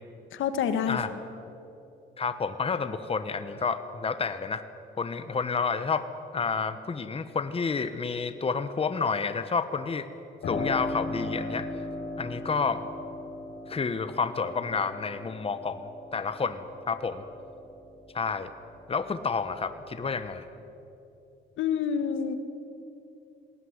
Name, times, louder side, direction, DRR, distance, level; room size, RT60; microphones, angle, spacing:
voice 1, 0.3-1.2 21.6-22.4, left 7 dB, 80° left, 10 dB, 1.7 m, -28 dB
voice 2, 2.2-4.6 5.0-6.1 6.3-10.1 10.5-11.7 12.2-12.8 13.7-17.2 18.1-18.5 18.9-20.4, left 5 dB, 30° left, 11 dB, 1.2 m, -30 dB
Piano, 10.4-18.9 19.3-20.3, left 2 dB, 65° left, 5.0 m, -38 dB
20.5 x 17.5 x 9.7 m, 3.0 s
cardioid pair, 90°, 20 cm